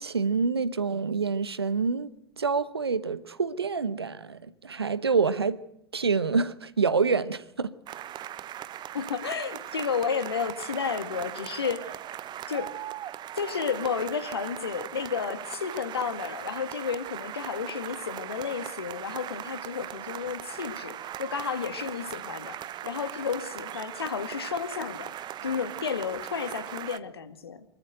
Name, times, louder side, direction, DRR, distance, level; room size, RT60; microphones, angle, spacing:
voice 1, 0.0-2.1 2.4-5.6 5.9-7.7, right 5 dB, 85° right, 1.0 m, -27 dB
sound 1, 7.9-27.0, right 11 dB, 35° right, 1.0 m, -39 dB
voice 2, 8.9-12.0 12.5-12.7 13.4-25.1 25.4-27.6, left 6 dB, 80° left, 2.0 m, -32 dB
25.0 x 14.0 x 8.0 m
figure-of-eight pair, 80°, 13 cm